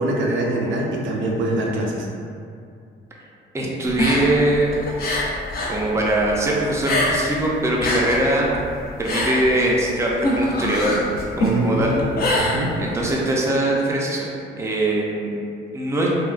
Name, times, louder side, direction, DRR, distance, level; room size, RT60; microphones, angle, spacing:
voice 1, 0.0-2.1 11.5-12.1 12.4-12.8, right 1 dB, 75° right, -1 dB, 0.5 m, -23 dB
voice 2, 3.5-4.8 5.7-8.5 9.0-11.0 11.4-11.9 12.8-14.3 14.6-15.3 15.7-16.1, right 1 dB, 15° right, -3 dB, 0.5 m, -21 dB
sound 1, 3.9-5.8 6.1-7.4 7.7-13.1, left 1 dB, 50° left, 0.6 m, -24 dB
3.4 x 2.3 x 2.4 m, 2.4 s
cardioid pair, 90°, 20 cm